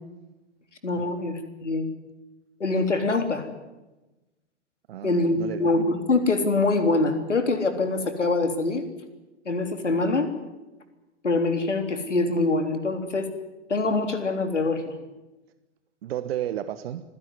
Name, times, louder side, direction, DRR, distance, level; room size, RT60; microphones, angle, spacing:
voice 1, 0.8-1.9 2.6-3.5 5.0-8.9 9.5-10.3 11.2-13.3 13.7-15.0, left 3 dB, 80° left, 7 dB, 3.6 m, -24 dB
voice 2, 4.9-5.6 16.0-17.0, right 11 dB, 55° right, 13 dB, 1.3 m, -32 dB
25.5 x 16.5 x 9.7 m, 1.1 s
figure-of-eight pair, 105°, 35 cm